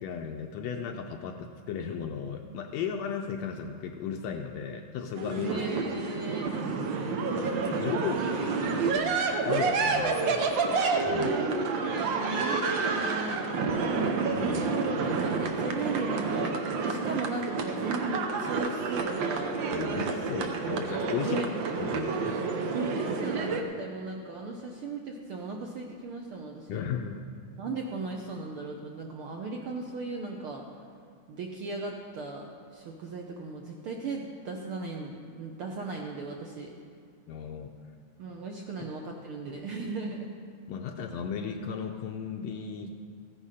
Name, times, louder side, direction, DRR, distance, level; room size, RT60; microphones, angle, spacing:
voice 1, 0.0-5.7 7.7-8.2 8.6-8.8 9.4-10.5 11.1-11.3 14.4-14.8 19.7-21.4 21.8-22.4 26.7-27.2 37.3-37.7 38.8-38.9 40.7-42.9, left 7 dB, 80° left, 3 dB, 1.7 m, -35 dB
sound 1, 5.2-23.6, right 4 dB, 90° right, 1.0 m, -29 dB
voice 2, 5.4-6.6 8.2-9.2 11.1-14.1 14.6-19.7 21.2-21.5 22.7-26.8 27.6-30.6 31.3-32.4 32.7-36.7 38.2-40.3, right 3 dB, 70° right, 1 dB, 1.3 m, -37 dB
15.0 x 10.0 x 4.9 m, 2.2 s
omnidirectional pair, 3.4 m